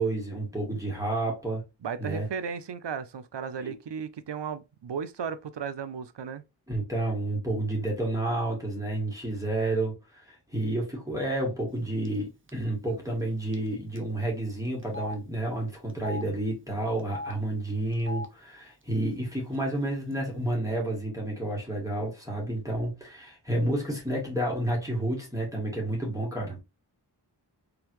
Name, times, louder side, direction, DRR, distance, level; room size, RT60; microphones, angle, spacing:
voice 1, 0.0-1.6 2.0-2.3 3.6-3.8 6.7-26.6, right 1 dB, 10° right, 1.9 m, -30 dB
voice 2, 1.8-6.4, right 6 dB, 85° right, 0.6 m, -35 dB
Telephone, 12.1-12.2 12.5-12.6 13.5-13.7 14.0-14.1 14.8-15.2 15.9-16.2 17.0-17.3 17.9-18.3 19.1-19.2 19.5-20.1, left 2 dB, 30° right, 0.9 m, -38 dB
3.8 x 3.4 x 3.0 m
wide cardioid pair, 50°, 41 cm